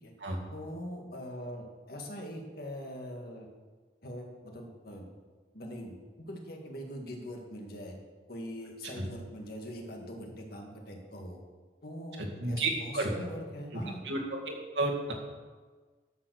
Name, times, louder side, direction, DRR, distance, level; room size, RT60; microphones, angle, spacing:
voice 1, 0.5-3.5 4.0-5.1 5.5-7.9 8.3-11.4 11.8-14.0, equal, 55° left, 1 dB, 1.8 m, -42 dB
voice 2, 12.2-13.1 14.1-15.1, right 2 dB, 70° right, 0 dB, 2.1 m, -32 dB
13.0 x 6.8 x 6.4 m, 1.4 s
head